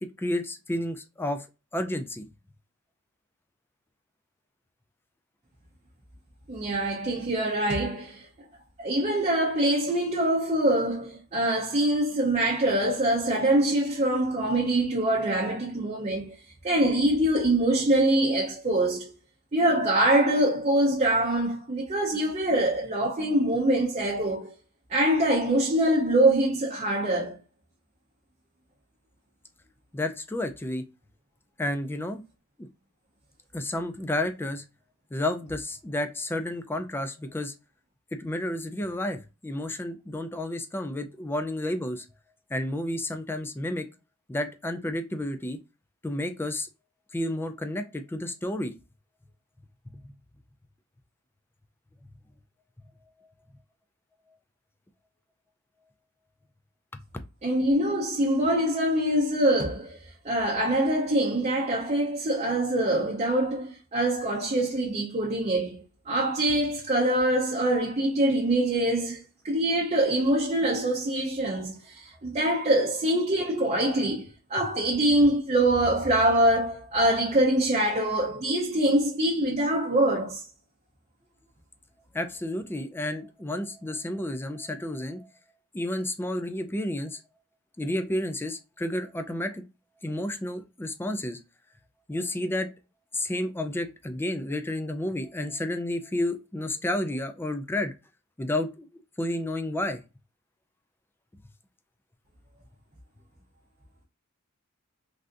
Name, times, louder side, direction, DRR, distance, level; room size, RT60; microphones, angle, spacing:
voice 1, 0.0-1.5 1.7-2.2 29.9-30.8 31.6-32.2 32.6-32.7 33.5-34.6 35.1-37.5 38.2-42.0 42.5-43.9 44.3-45.6 46.0-46.7 47.1-48.7 49.9-50.0 82.1-85.3 85.7-87.2 87.8-89.6 90.0-91.4 92.1-92.7 93.1-97.9 98.4-98.9 99.2-100.0, left 1 dB, 10° left, 0.3 m, -31 dB
voice 2, 6.5-8.3 8.8-16.4 16.6-19.2 19.5-24.5 24.9-27.4 57.4-60.0 60.2-80.4, right 1 dB, 30° right, 0.6 m, -24 dB
3.3 x 2.5 x 2.5 m
head